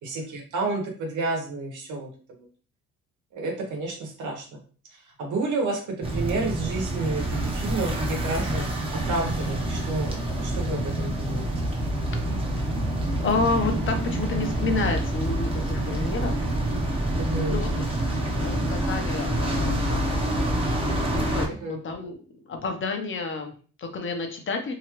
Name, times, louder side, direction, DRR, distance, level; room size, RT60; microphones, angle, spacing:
voice 1, 0.0-2.1 3.3-4.4 4.9-8.7 9.1-11.5 17.2-17.6 21.6-21.8, right 2 dB, 80° right, 1 dB, 1.1 m, -30 dB
sound 1, 6.0-21.5, right 1 dB, 20° right, 0.8 m, -27 dB
voice 2, 12.2-12.6 13.2-16.5 17.5-20.2 21.1-22.2 22.5-24.7, left 4 dB, 40° left, 4 dB, 0.8 m, -30 dB
2.8 x 2.4 x 3.0 m, 0.40 s
cardioid pair, 90°, 30 cm